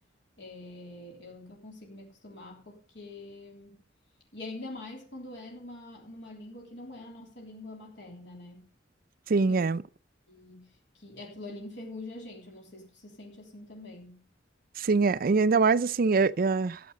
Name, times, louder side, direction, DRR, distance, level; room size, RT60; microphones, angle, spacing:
voice 1, 0.4-3.8 4.3-8.7 9.5-9.7 10.3-14.2, left 2 dB, 65° left, 3.3 m, -45 dB
voice 2, 9.3-9.8 14.8-16.8, right 4 dB, 50° right, 0.5 m, -24 dB
13.5 x 7.6 x 5.3 m
head